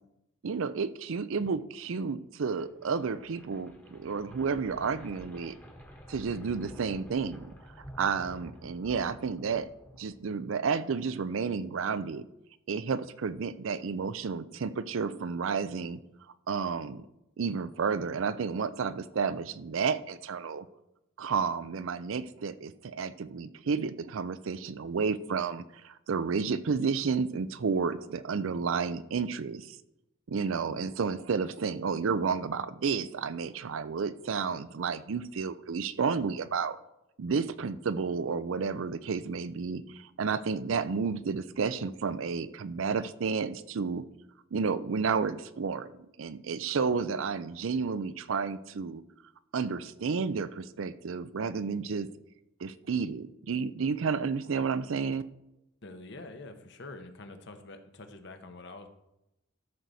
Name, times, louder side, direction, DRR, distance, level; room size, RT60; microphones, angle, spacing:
voice 1, 0.4-5.5 6.1-7.5 8.0-9.7 10.0-12.3 12.7-16.0 16.5-17.1 17.4-20.7 21.2-29.8 30.3-36.8 37.2-44.0 44.5-45.9 46.2-49.0 49.5-52.1 52.6-55.2, right 5 dB, 75° right, 14 dB, 0.5 m, -31 dB
sound 1, 2.5-10.5, equal, 10° left, 1.3 m, -50 dB
voice 2, 55.8-58.9, left 2 dB, 55° left, 6 dB, 1.1 m, -46 dB
13.0 x 6.3 x 4.1 m, 0.88 s
head